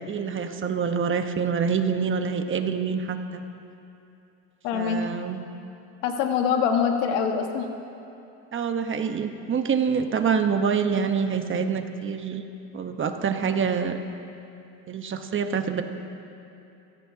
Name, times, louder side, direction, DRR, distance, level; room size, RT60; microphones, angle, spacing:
voice 1, 0.1-3.4 4.7-5.4 8.5-12.4 12.7-14.0 14.9-15.8, right 6 dB, 30° right, 6 dB, 1.2 m, -26 dB
voice 2, 4.6-5.0 6.0-7.7, left 7 dB, 85° left, 3 dB, 1.6 m, -24 dB
23.5 x 16.5 x 2.9 m, 2.8 s
supercardioid pair, 105°, 37 cm